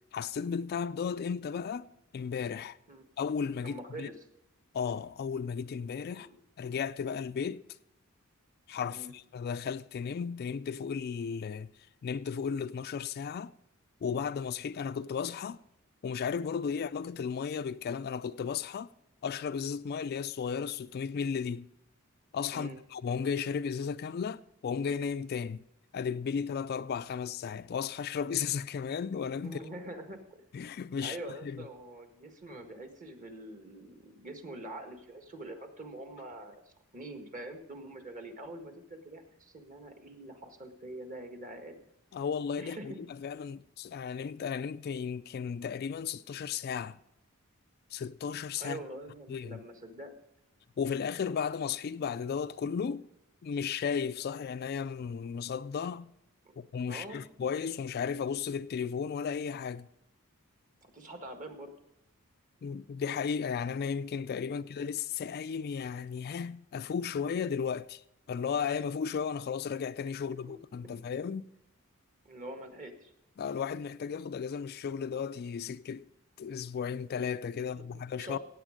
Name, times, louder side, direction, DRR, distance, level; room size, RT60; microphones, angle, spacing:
voice 1, 0.1-2.8 3.2-4.1 4.7-6.3 6.6-7.6 8.7-11.7 12.0-13.5 14.0-15.6 16.0-18.9 19.2-21.7 22.3-25.6 25.9-29.6 30.5-31.2 31.4-31.7 42.1-47.0 47.9-48.8 49.3-49.6 50.8-53.1 53.4-56.1 56.6-59.9 62.6-68.0 68.3-71.5 73.4-76.1 76.4-78.4, left 6 dB, 45° left, 0.3 m, -34 dB
voice 2, 3.6-4.1 6.1-6.4 8.9-9.1 22.5-22.8 29.4-30.4 31.0-41.8 42.6-43.0 48.6-50.2 56.4-56.6 56.9-57.3 60.8-61.7 64.5-64.7 70.3-70.6 70.8-71.0 72.2-73.1 77.6-78.4, right 1 dB, 35° right, 1.7 m, -45 dB
16.5 x 8.5 x 5.1 m
head